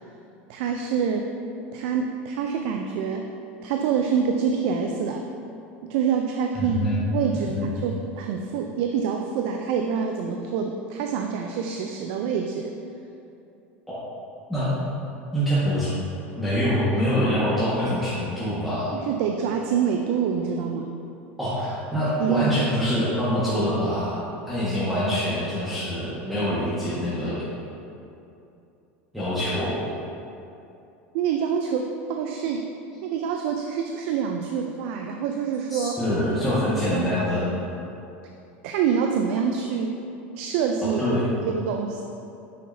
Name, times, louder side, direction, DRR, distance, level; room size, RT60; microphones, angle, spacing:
voice 1, 0.5-1.3 1.7-3.3 3.6-5.2 5.9-6.8 7.1-12.7 18.9-21.0 22.2-22.8 31.1-32.7 33.0-36.0 36.9-37.2 38.6-39.9 40.4-41.0 41.4-42.0, right 7 dB, 65° right, 3 dB, 0.4 m, -26 dB
voice 2, 6.5-7.0 7.3-7.7 13.9-14.0 14.5-14.7 15.3-15.9 16.3-18.9 21.4-27.3 29.1-29.8 35.7-37.5 41.0-41.3, equal, ahead, -12 dB, 1.5 m, -25 dB
6.4 x 5.6 x 2.7 m, 2.7 s
hypercardioid pair, 95°, 7 cm